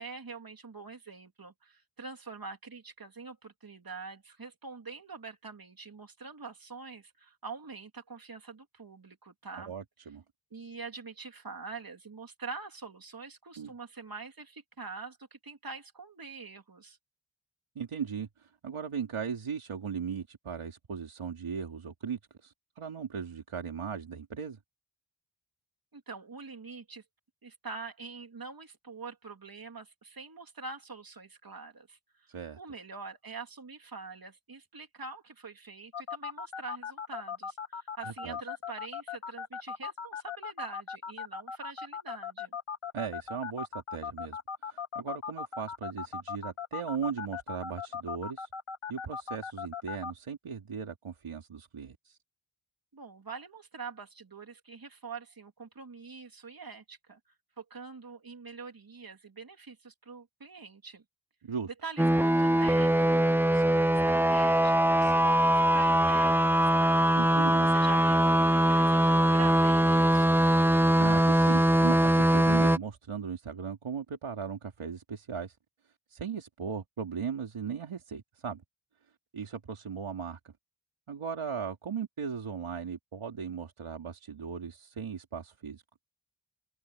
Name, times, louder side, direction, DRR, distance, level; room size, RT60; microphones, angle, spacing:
voice 1, 0.0-9.7 10.5-17.0 25.9-27.0 27.4-42.6 52.9-57.2 57.6-61.0 61.6-67.1 67.6-70.4, right 4 dB, 45° right, 3.3 m, -45 dB
voice 2, 9.7-10.2 13.6-13.7 17.7-24.6 32.3-32.6 38.1-38.4 42.9-44.4 44.6-48.5 48.9-52.2 61.4-61.7 67.1-67.7 71.0-75.6 76.1-78.6 79.3-80.4 81.1-85.8, right 6 dB, 90° right, 2.9 m, -37 dB
sound 1, 35.9-50.1, left 7 dB, 85° left, 2.2 m, -37 dB
sound 2, 62.0-72.8, right 1 dB, 5° right, 0.7 m, -22 dB
open air
wide cardioid pair, 85°, 49 cm